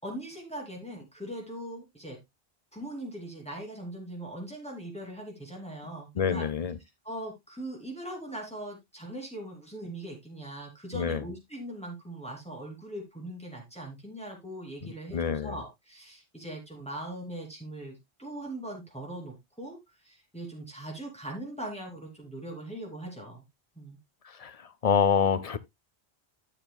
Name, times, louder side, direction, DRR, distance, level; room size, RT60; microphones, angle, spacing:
voice 1, 0.0-2.2 2.7-6.5 7.0-19.8 20.0-23.4 23.8-24.0, right 1 dB, 5° left, 2.8 m, -40 dB
voice 2, 6.2-6.8 10.9-11.2 14.8-15.6 24.2-25.6, left 6 dB, 45° left, 0.5 m, -27 dB
12.5 x 7.5 x 2.2 m
omnidirectional pair, 1.1 m